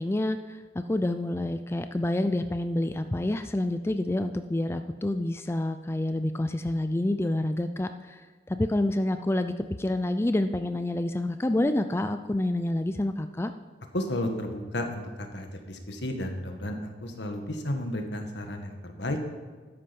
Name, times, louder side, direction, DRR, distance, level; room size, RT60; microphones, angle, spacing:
voice 1, 0.0-13.5, left 1 dB, 15° left, 9 dB, 0.4 m, -28 dB
voice 2, 13.9-19.2, left 1 dB, 75° left, 4 dB, 1.8 m, -33 dB
13.0 x 10.0 x 5.3 m, 1.4 s
head